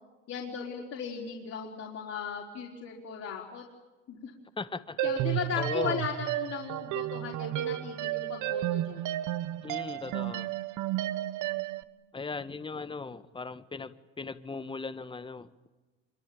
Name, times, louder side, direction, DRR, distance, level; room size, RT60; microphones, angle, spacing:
voice 1, 0.3-3.6 4.1-4.3 5.0-9.1, left 7 dB, 40° left, 4.5 m, -37 dB
voice 2, 4.6-5.0 5.6-6.0 9.6-10.5 12.1-15.5, left 4 dB, 15° left, 1.5 m, -37 dB
sound 1, 5.0-11.8, right 14 dB, 50° right, 1.4 m, -32 dB
26.0 x 23.5 x 8.7 m
hypercardioid pair, 90°, 38 cm